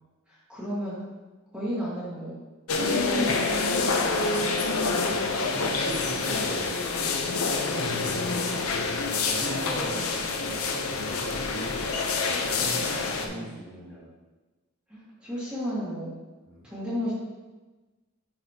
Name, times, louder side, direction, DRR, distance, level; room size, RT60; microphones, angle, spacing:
voice 1, 0.3-1.0 1.5-2.4 2.7-5.0 7.7-7.8 9.4-10.2 13.3-13.5 14.9-16.1 16.6-17.1, equal, 5° right, -10 dB, 1.6 m, -34 dB
sound 1, 2.7-13.3, left 3 dB, 85° left, 0.7 m, -27 dB
voice 2, 5.1-8.4 9.2-11.8 12.4-14.0 16.5-16.7, right 1 dB, 10° left, -8 dB, 1.8 m, -39 dB
10.5 x 4.1 x 2.9 m, 1.2 s
head